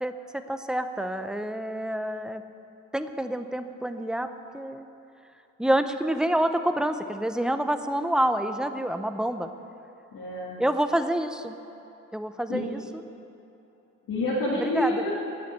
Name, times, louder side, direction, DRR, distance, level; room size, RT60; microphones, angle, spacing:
voice 1, 0.0-2.4 2.9-4.3 4.5-4.9 5.6-9.5 10.6-11.6 12.1-13.0 14.6-15.1, right 1 dB, ahead, 9 dB, 0.6 m, -27 dB
voice 2, 10.1-10.6 12.5-12.6 14.1-15.1, left 1 dB, 85° left, -7 dB, 2.1 m, -27 dB
10.5 x 8.3 x 9.2 m, 3.0 s
cardioid pair, 110°, 32 cm